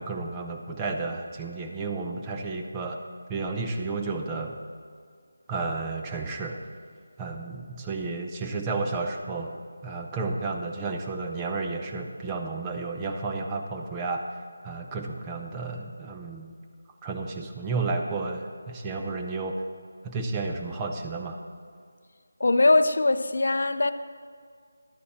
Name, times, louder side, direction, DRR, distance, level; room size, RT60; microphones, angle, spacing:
voice 1, 0.0-3.0 3.3-4.6 5.5-6.6 7.2-9.5 9.8-14.2 14.6-16.5 17.0-19.6 20.0-21.4, right 3 dB, 15° right, 0.6 m, -32 dB
voice 2, 22.4-23.9, left 2 dB, 65° left, 0.5 m, -21 dB
11.5 x 9.4 x 4.4 m
figure-of-eight pair, 165°, 0 cm